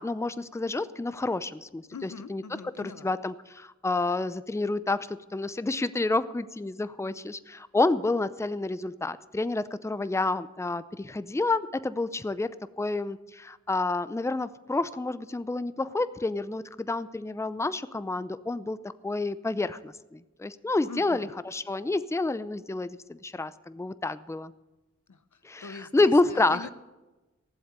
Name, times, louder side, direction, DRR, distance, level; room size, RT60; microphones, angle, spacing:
voice 1, 0.0-2.4 2.8-12.5 12.8-24.5 25.4-26.7, left 2 dB, 10° left, 14 dB, 0.5 m, -29 dB
voice 2, 1.9-3.2 20.9-21.3 25.1-26.7, left 4 dB, 85° left, 12 dB, 0.8 m, -43 dB
15.0 x 7.8 x 8.2 m, 1.1 s
wide cardioid pair, 60°, 29 cm